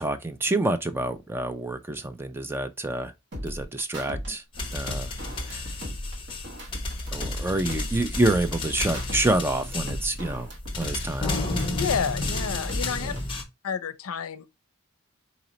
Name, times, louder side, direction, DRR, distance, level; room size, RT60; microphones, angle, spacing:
voice 1, 0.0-3.1 3.4-4.4 4.7-5.1 5.5-5.7 7.1-10.5 10.8-11.3 13.0-13.2, right 2 dB, 10° right, 0.3 m, -27 dB
sound 1, 3.3-4.3 4.6-7.4 7.7-9.3 9.6-12.4 12.7-13.3, equal, 55° right, 1.1 m, -37 dB
sound 2, 4.5-13.4, left 2 dB, 25° left, 0.8 m, -32 dB
voice 2, 11.7-13.1 13.6-14.5, left 6 dB, 80° left, 0.5 m, -30 dB
4.0 x 3.8 x 3.0 m
head